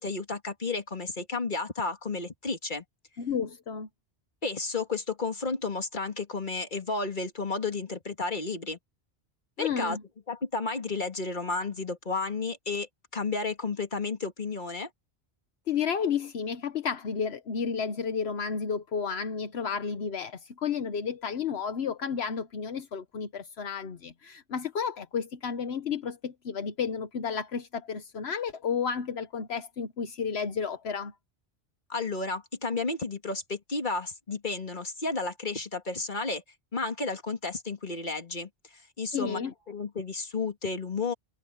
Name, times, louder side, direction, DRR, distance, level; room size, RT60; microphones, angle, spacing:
voice 1, 0.0-2.8 4.4-8.8 9.6-10.0 10.3-14.9 31.9-36.4 36.7-38.5 39.0-41.1, left 3 dB, 50° left, 2.3 m, -32 dB
voice 2, 3.2-3.9 9.6-10.0 15.7-31.1 39.1-39.5, left 6 dB, 75° left, 1.2 m, -32 dB
omnidirectional pair, 1.1 m